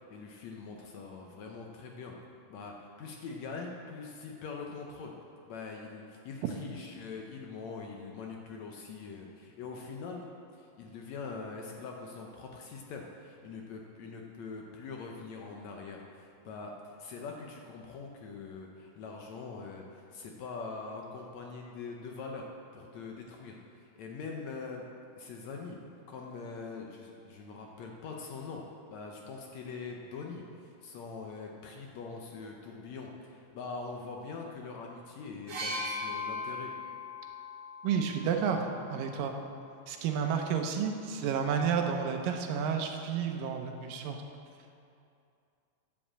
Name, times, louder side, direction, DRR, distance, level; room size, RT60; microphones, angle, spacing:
voice 1, 0.0-2.2 2.5-5.1 5.5-10.3 10.5-22.5 22.7-24.8 25.2-25.8 26.1-28.6 28.9-36.7, left 4 dB, 70° left, 1 dB, 1.8 m, -43 dB
sound 1, 35.5-39.3 40.3-40.5, left 2 dB, 50° right, 2.3 m, -39 dB
voice 2, 37.8-38.6 38.9-39.3 39.9-44.2, right 7 dB, 80° right, 4 dB, 2.5 m, -31 dB
9.9 x 7.7 x 7.4 m, 2.5 s
omnidirectional pair, 3.9 m